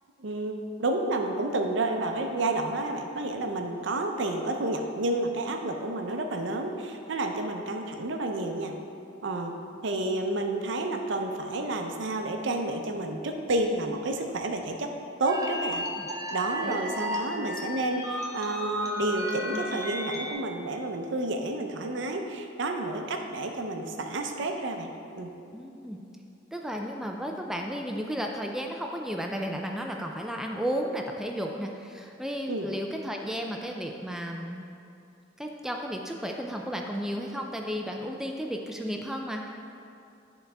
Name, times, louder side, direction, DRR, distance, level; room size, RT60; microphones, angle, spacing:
voice 1, 0.2-8.7 9.2-9.5 9.8-14.9 15.2-15.8 16.3-24.9 25.1-25.3 32.5-32.7, right 2 dB, 70° right, 4 dB, 0.6 m, -30 dB
sound 1, 15.2-20.3, equal, 20° right, 0.9 m, -34 dB
voice 2, 15.5-16.1 16.6-16.9 25.5-26.0 26.5-34.6 35.4-39.5, equal, 5° right, 1 dB, 0.3 m, -33 dB
10.0 x 4.0 x 3.4 m, 2.7 s
head